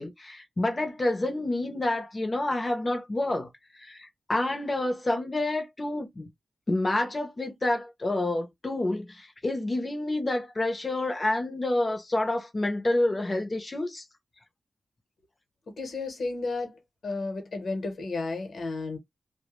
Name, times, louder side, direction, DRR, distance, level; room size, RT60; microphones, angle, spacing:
voice 1, 0.0-3.5 3.7-6.3 6.7-14.0, left 2 dB, 25° left, 0.6 m, -28 dB
voice 2, 15.8-16.8 17.0-19.0, left 3 dB, 65° left, 0.9 m, -32 dB
2.1 x 2.1 x 2.9 m
wide cardioid pair, 155°, 0 cm